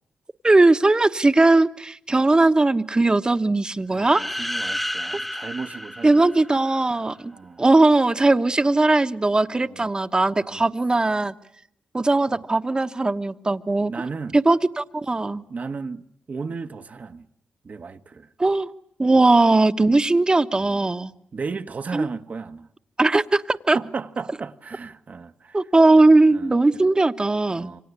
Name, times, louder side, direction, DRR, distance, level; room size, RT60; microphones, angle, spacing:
voice 1, 0.4-4.2 6.0-7.3 7.6-11.3 11.9-13.9 14.3-15.4 18.4-18.7 19.0-21.1 21.9-22.1 23.0-23.8 25.5-27.7, right 2 dB, 25° right, 1.2 m, -19 dB
sound 1, 3.9-6.9, equal, 5° left, 1.3 m, -31 dB
voice 2, 3.9-6.2 7.3-7.6 9.5-9.9 10.4-10.7 12.3-12.4 13.9-14.4 15.5-17.3 17.6-18.3 20.5-20.8 21.3-22.7 23.7-25.6 26.3-26.8 27.5-27.8, right 4 dB, 50° right, 1.3 m, -35 dB
28.5 x 25.0 x 8.2 m
cardioid pair, 75°, 3 cm